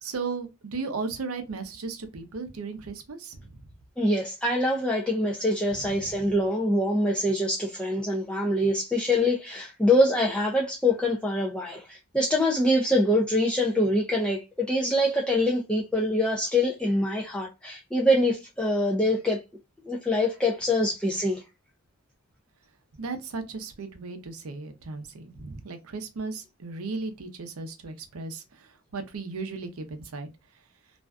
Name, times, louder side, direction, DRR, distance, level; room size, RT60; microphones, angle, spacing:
voice 1, 0.0-3.6 5.8-6.1 23.0-30.3, right 4 dB, 75° right, 0.6 m, -36 dB
voice 2, 4.0-19.4 19.8-21.4, left 1 dB, 5° left, 0.3 m, -24 dB
2.5 x 2.2 x 2.2 m
head